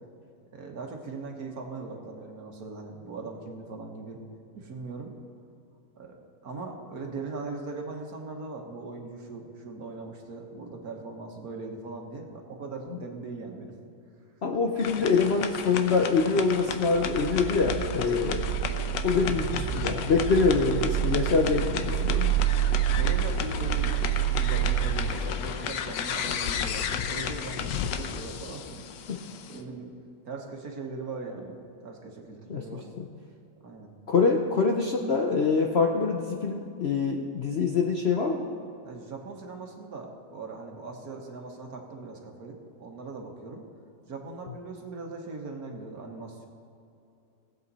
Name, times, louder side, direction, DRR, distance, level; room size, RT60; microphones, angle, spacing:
voice 1, 0.5-4.2 4.5-5.1 6.0-6.2 6.4-13.8 18.0-18.3 22.9-29.2 29.5-29.9 30.2-31.6 31.8-32.9 33.6-33.9 38.8-43.6 44.1-46.5, right 3 dB, 60° right, 2 dB, 1.7 m, -40 dB
voice 2, 14.4-18.5 19.0-22.4 29.1-29.2 32.5-32.6 33.0-33.1 34.1-38.5, left 4 dB, 55° left, 1 dB, 0.7 m, -25 dB
sound 1, 14.8-29.6, left 8 dB, 85° left, 1.4 m, -34 dB
sound 2, 16.8-25.2, right 12 dB, 85° right, 0.6 m, -28 dB
18.5 x 8.1 x 4.1 m, 2.6 s
omnidirectional pair, 1.9 m